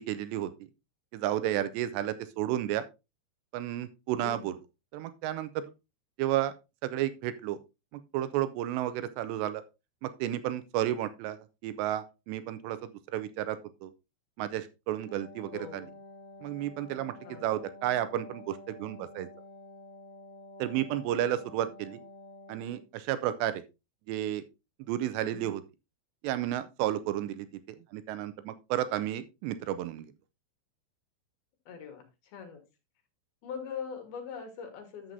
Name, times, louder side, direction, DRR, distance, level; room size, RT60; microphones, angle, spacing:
voice 1, 0.1-0.5 1.1-2.8 3.5-4.6 4.9-5.6 6.2-6.5 6.8-7.6 8.1-9.6 10.0-13.9 14.4-15.9 16.4-19.3 20.6-22.0 22.5-23.6 24.1-24.4 24.8-25.6 26.2-27.5 27.9-30.1, right 12 dB, 85° right, 12 dB, 2.5 m, -32 dB
voice 2, 4.2-4.6 15.5-15.9 17.2-17.4 25.2-25.5 31.7-32.6 33.4-35.1, left 6 dB, 65° left, 4 dB, 2.9 m, -42 dB
Wind instrument woodwind instrument, 14.9-22.9, left 2 dB, 40° left, 1.3 m, -50 dB
11.0 x 7.4 x 2.7 m, 0.26 s
omnidirectional pair, 5.6 m